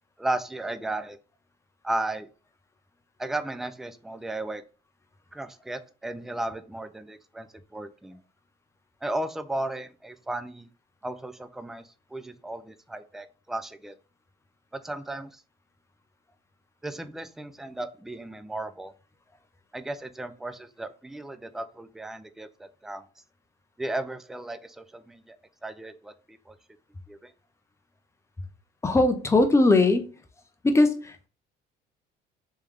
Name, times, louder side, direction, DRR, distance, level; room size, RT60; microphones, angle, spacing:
voice 1, 0.2-1.2 1.8-2.3 3.2-4.6 5.3-8.2 9.0-10.7 11.0-13.9 14.7-15.4 16.8-18.9 19.7-23.0 23.8-25.4 25.6-26.6 27.1-27.3, right 2 dB, ahead, 11 dB, 0.3 m, -35 dB
voice 2, 28.8-30.0 30.6-31.3, left 2 dB, 15° left, 6 dB, 0.7 m, -20 dB
3.4 x 3.3 x 3.3 m, 0.37 s
cardioid pair, 105°, 18 cm